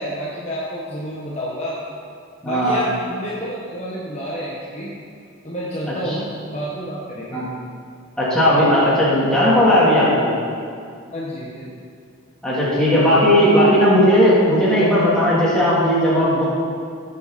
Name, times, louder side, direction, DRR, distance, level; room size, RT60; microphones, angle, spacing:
voice 1, 0.0-1.8 2.4-4.9 5.4-7.4 11.1-11.7, equal, 30° left, -6 dB, 1.4 m, -29 dB
voice 2, 2.4-2.8 6.1-6.2 7.3-7.4 8.2-10.3 12.4-16.4, equal, 5° left, -10 dB, 3.3 m, -16 dB
16.5 x 7.8 x 4.3 m, 2.3 s
head